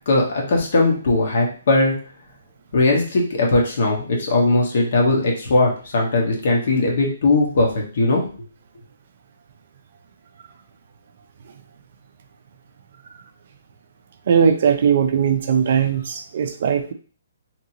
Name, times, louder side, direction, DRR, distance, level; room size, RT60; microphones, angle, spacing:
voice 1, 0.1-2.0 2.7-8.2, left 2 dB, 55° left, 0 dB, 1.0 m, -19 dB
voice 2, 14.3-16.9, right 7 dB, 45° right, 7 dB, 0.4 m, -19 dB
2.9 x 2.7 x 2.7 m, 0.40 s
hypercardioid pair, 170°, 0 cm